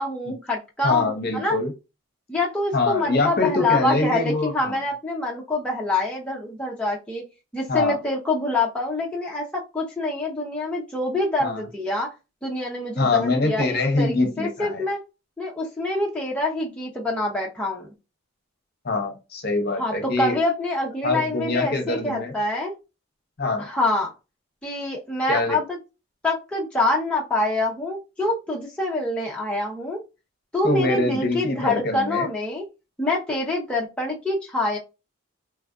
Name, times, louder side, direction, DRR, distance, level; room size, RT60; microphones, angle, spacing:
voice 1, 0.0-1.6 2.3-7.2 7.5-12.1 12.4-15.0 15.4-17.9 19.8-22.7 23.6-24.1 24.6-25.8 26.2-30.0 30.5-32.6 33.0-34.8, left 2 dB, 5° left, 0.6 m, -26 dB
voice 2, 0.8-1.7 2.7-4.8 7.7-8.0 11.4-11.6 13.0-14.9 18.8-20.4 21.0-22.3 23.4-23.7 25.3-25.6 30.6-32.3, left 2 dB, 45° left, 0.8 m, -24 dB
3.2 x 2.5 x 2.3 m
head